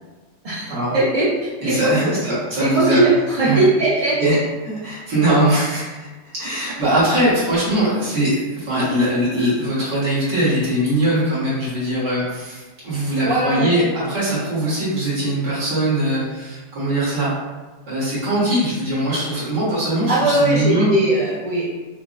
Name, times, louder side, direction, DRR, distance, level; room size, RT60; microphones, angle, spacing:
voice 1, 0.9-1.3 1.6-2.2 2.6-4.4 13.1-13.7 20.1-21.6, right 2 dB, 60° right, -9 dB, 0.3 m, -19 dB
voice 2, 1.6-3.0 3.5-3.6 4.2-4.4 4.7-17.3 17.8-20.9, right 1 dB, 75° right, -10 dB, 2.1 m, -21 dB
5.7 x 2.0 x 2.4 m, 1.2 s
omnidirectional pair, 1.8 m